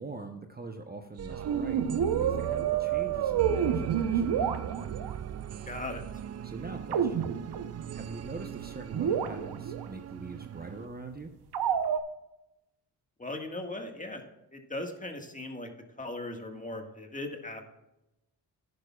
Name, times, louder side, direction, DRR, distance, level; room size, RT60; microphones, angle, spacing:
voice 1, 0.0-1.8 2.2-4.5 6.4-7.3 7.9-11.3, right 3 dB, 25° right, 5 dB, 0.9 m, -43 dB
sound 1, 1.2-10.9, right 9 dB, 40° right, 0.4 m, -40 dB
sound 2, 1.4-5.1 6.9-7.8 8.2-8.3 8.6-8.7 8.9-9.8 11.5-12.0, right 8 dB, 70° right, 1.0 m, -29 dB
voice 2, 5.7-6.0 13.2-14.2 14.5-15.7 16.0-17.6, left 2 dB, 20° left, 3 dB, 1.8 m, -38 dB
10.5 x 10.0 x 2.4 m, 0.91 s
cardioid pair, 75°, 41 cm